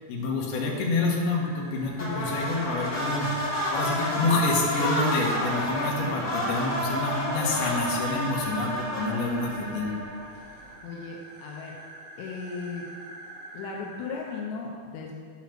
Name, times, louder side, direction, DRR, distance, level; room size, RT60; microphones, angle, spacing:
voice 1, 0.1-3.3 3.7-9.9, left 3 dB, 70° left, -2 dB, 3.2 m, -27 dB
sound 1, 0.7-14.4, right 1 dB, 90° right, 3.9 m, -45 dB
sound 2, 1.9-10.4, equal, 40° left, 1.2 m, -30 dB
voice 2, 10.8-11.8 12.2-12.8 13.5-15.2, left 4 dB, 85° left, -1 dB, 3.1 m, -36 dB
11.0 x 5.8 x 5.9 m, 2.1 s
omnidirectional pair, 4.9 m